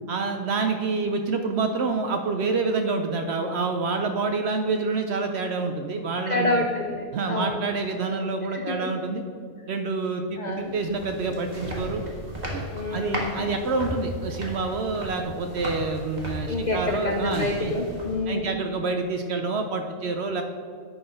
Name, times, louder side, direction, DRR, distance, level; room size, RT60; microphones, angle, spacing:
voice 1, 0.1-6.6 7.1-9.2 9.7-12.0 12.5-17.7 18.3-20.4, right 3 dB, 65° right, 5 dB, 0.7 m, -27 dB
voice 2, 6.3-7.6 8.5-8.9 10.4-10.8 12.7-13.4 16.4-18.5, left 2 dB, 70° left, 3 dB, 0.4 m, -28 dB
sound 1, 10.6-18.4, right 1 dB, 30° right, 1.4 m, -36 dB
10.0 x 3.9 x 5.2 m, 2.2 s
omnidirectional pair, 1.5 m